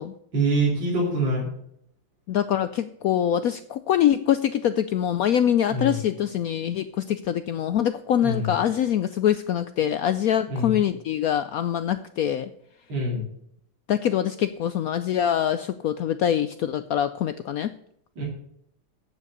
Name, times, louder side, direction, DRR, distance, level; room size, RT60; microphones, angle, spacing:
voice 1, 0.3-1.5 5.7-6.0 8.2-8.5 10.5-10.8 12.9-13.2 18.2-18.3, right 2 dB, 75° right, -4 dB, 3.5 m, -25 dB
voice 2, 2.3-12.5 13.9-17.7, left 10 dB, 90° left, 11 dB, 0.7 m, -24 dB
8.5 x 7.4 x 7.9 m, 0.71 s
omnidirectional pair, 2.1 m